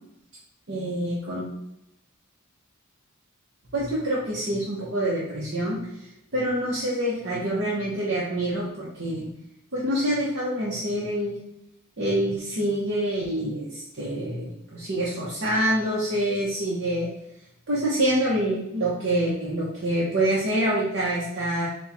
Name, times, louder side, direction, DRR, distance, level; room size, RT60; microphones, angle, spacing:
voice 1, 0.7-1.4 3.7-5.8 6.3-9.3 9.7-11.4 12.0-17.1 17.7-21.7, right 1 dB, 55° right, -7 dB, 0.9 m, -26 dB
4.3 x 2.3 x 4.1 m, 0.82 s
head